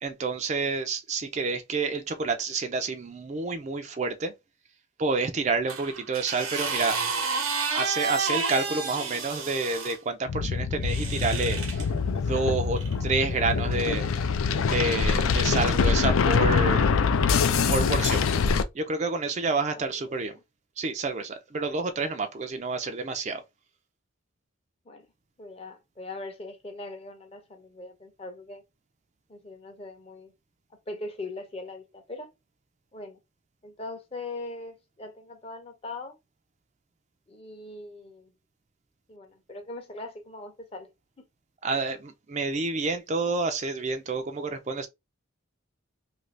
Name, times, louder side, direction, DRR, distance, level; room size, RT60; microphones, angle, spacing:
voice 1, 0.0-4.3 5.0-7.0 7.7-11.8 12.1-14.1 14.7-16.9 17.7-18.2 18.7-20.4 20.8-23.4 41.6-44.9, right 3 dB, 35° right, 0.4 m, -29 dB
sound 1, 5.7-10.0 10.8-11.9 12.8-12.9, right 4 dB, 85° right, 0.9 m, -30 dB
sound 2, 10.3-18.6, left 5 dB, 80° left, 0.4 m, -24 dB
voice 2, 19.7-20.2 24.9-25.1 25.4-28.6 29.3-30.3 30.7-32.3 32.9-33.2 33.6-36.2 37.3-38.3 39.1-40.9, left 2 dB, 30° left, 0.6 m, -41 dB
2.8 x 2.6 x 3.1 m
head